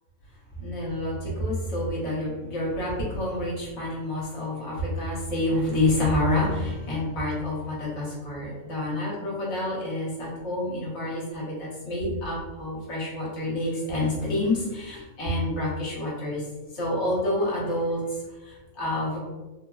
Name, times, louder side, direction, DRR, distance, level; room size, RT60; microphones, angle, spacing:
voice 1, 0.5-19.2, left 1 dB, 60° left, -5 dB, 1.1 m, -28 dB
3.3 x 2.0 x 2.3 m, 1.1 s
omnidirectional pair, 1.4 m